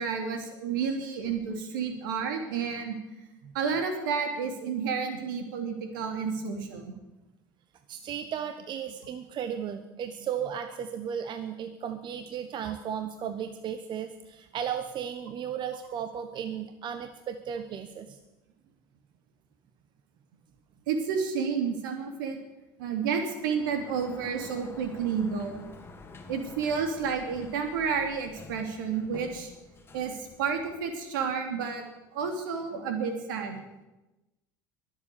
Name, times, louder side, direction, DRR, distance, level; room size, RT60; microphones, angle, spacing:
voice 1, 0.0-3.0 3.5-6.9 12.6-12.7 20.9-22.4 22.8-25.6 26.3-29.5 29.9-31.8 32.1-33.6, right 6 dB, 80° right, 4 dB, 2.9 m, -30 dB
voice 2, 7.9-18.2, right 8 dB, 45° right, 8 dB, 1.2 m, -35 dB
Sliding door, 23.4-31.2, left 3 dB, 20° left, 2.1 m, -49 dB
22.0 x 7.9 x 7.0 m, 1.0 s
hypercardioid pair, 80°, 11 cm